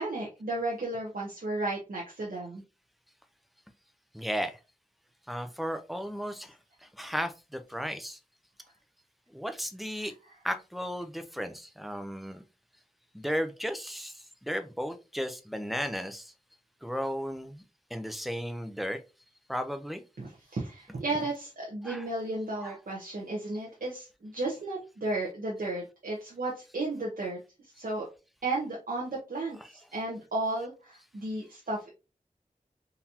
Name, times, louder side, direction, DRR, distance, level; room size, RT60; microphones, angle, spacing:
voice 1, 0.0-2.6 20.2-28.1 28.4-31.9, right 2 dB, 90° right, 0.9 m, -34 dB
voice 2, 4.1-4.6 5.3-8.2 9.3-10.1 10.4-12.4 13.1-16.3 16.8-17.6 17.9-19.0 19.5-20.0 21.8-22.1 22.6-22.8 29.6-29.7, equal, ahead, 0.5 m, -35 dB
3.9 x 2.8 x 2.7 m
wide cardioid pair, 60°, 14 cm